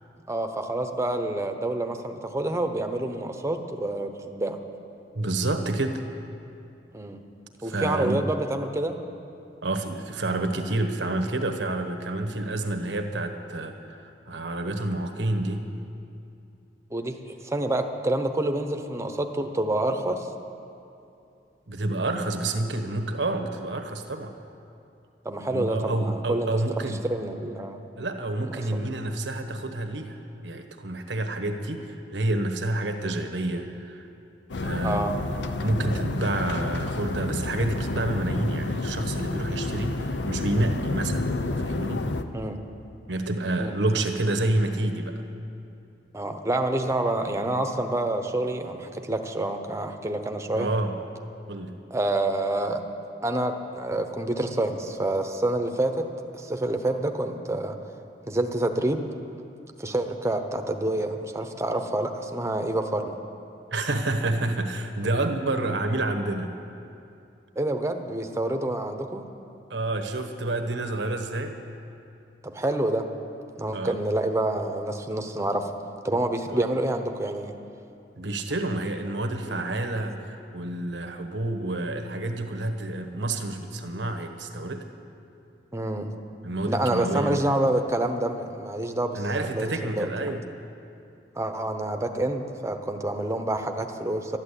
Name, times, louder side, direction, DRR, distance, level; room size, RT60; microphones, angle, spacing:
voice 1, 0.3-4.6 6.9-7.2 7.6-9.0 16.9-20.3 25.2-26.6 27.0-27.8 28.4-28.5 34.8-35.1 42.3-42.6 43.6-43.8 46.1-50.7 51.9-52.8 53.2-56.1 56.3-57.8 58.3-59.1 59.8-63.1 67.6-69.3 72.5-73.0 73.6-75.7 76.0-77.6 79.5-79.6 85.7-86.1 86.7-89.2 89.5-90.4 91.4-94.4, right 1 dB, 15° right, 5 dB, 0.9 m, -27 dB
voice 2, 5.1-6.0 7.6-8.2 9.6-15.6 21.7-24.3 25.5-27.0 28.0-34.1 34.6-35.0 35.6-41.3 41.6-42.1 43.1-45.2 50.5-51.0 51.5-51.7 63.7-66.5 69.7-71.5 73.7-74.0 76.5-76.6 78.2-84.9 86.4-87.6 89.1-90.4, right 2 dB, 85° right, 7 dB, 1.2 m, -29 dB
sound 1, 34.5-42.2, left 2 dB, 75° left, 0.7 m, -30 dB
12.5 x 11.5 x 8.4 m, 2.6 s
head